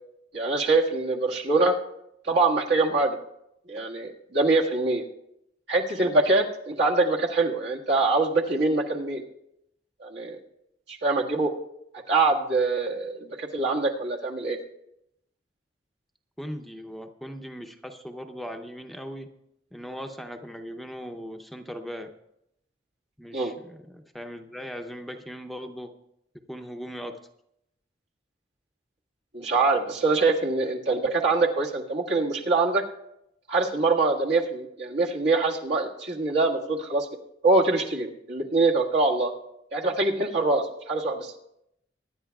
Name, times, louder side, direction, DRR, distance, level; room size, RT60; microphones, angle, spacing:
voice 1, 0.3-1.8 2.2-3.2 3.7-5.0 5.7-9.2 10.0-10.4 10.9-11.5 12.1-14.6 23.3-23.5 29.3-32.8 33.5-37.1 37.4-39.3 39.7-41.3, right 3 dB, 70° right, -2 dB, 1.7 m, -24 dB
voice 2, 16.4-19.3 19.7-22.1 23.2-25.9 26.5-27.2, equal, ahead, 4 dB, 0.6 m, -39 dB
23.5 x 10.5 x 2.3 m, 0.81 s
head